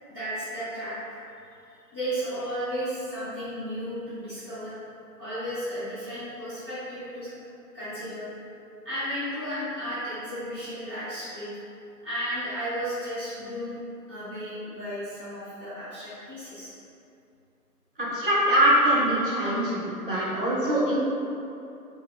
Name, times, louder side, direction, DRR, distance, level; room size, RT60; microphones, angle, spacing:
voice 1, 0.1-1.2 1.7-4.7 5.2-7.3 7.7-8.3 8.8-11.6 12.0-13.8 14.1-16.7, equal, ahead, -32 dB, 1.0 m, -34 dB
voice 2, 18.0-21.0, right 1 dB, 35° right, -9 dB, 0.7 m, -23 dB
3.6 x 2.2 x 3.8 m, 2.7 s
figure-of-eight pair, 160°, 48 cm